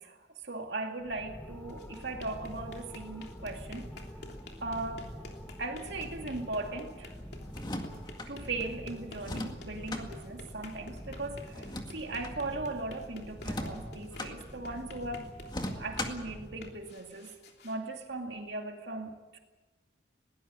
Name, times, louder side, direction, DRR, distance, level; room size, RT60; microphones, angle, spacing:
voice 1, 0.0-3.9 4.6-5.1 5.6-7.2 8.3-15.3 15.8-17.4 17.6-19.4, right 2 dB, 70° right, 3 dB, 2.4 m, -38 dB
sound 1, 1.0-17.0, equal, 10° left, 1.6 m, -46 dB
sound 2, 1.6-18.6, left 2 dB, 60° left, 3.2 m, -52 dB
sound 3, 7.5-8.3 9.2-10.1 11.5-12.4 13.4-14.3 15.5-16.3, left 1 dB, 25° left, 2.0 m, -38 dB
21.5 x 18.5 x 8.5 m, 1.2 s
head